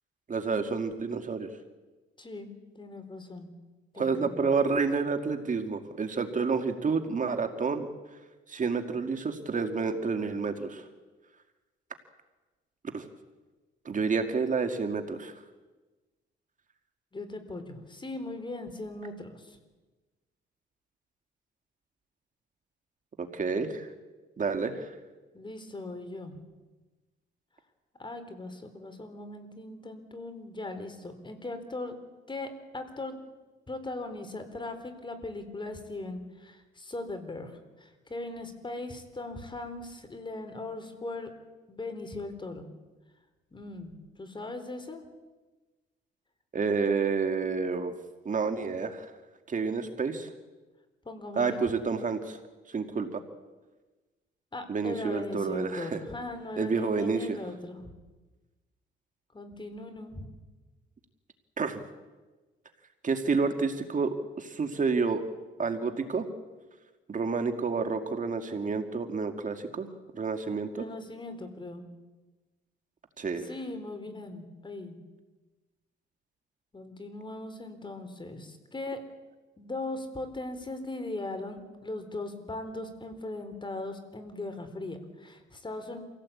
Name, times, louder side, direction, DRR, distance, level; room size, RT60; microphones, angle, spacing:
voice 1, 0.3-1.5 4.0-7.9 8.5-10.8 12.9-13.1 13.9-15.3 23.2-23.9 24.4-24.9 46.5-47.9 48.3-49.1 49.5-50.3 51.4-52.4 52.7-53.2 54.7-56.0 56.6-57.4 61.6-61.8 63.0-65.2 65.6-66.3 67.1-69.9 70.1-70.8 73.2-73.5, right 4 dB, 40° right, 6 dB, 2.2 m, -29 dB
voice 2, 2.2-2.5 2.8-3.5 3.9-4.4 17.1-19.6 25.3-26.4 28.0-31.9 32.3-33.1 33.7-37.5 37.8-41.3 41.7-42.7 43.5-45.0 51.0-51.6 54.5-57.9 59.3-60.3 70.8-71.9 73.4-75.0 76.7-79.0 79.6-86.0, left 2 dB, 25° left, 8 dB, 3.9 m, -39 dB
26.5 x 17.0 x 8.6 m, 1.2 s
cardioid pair, 90°, 20 cm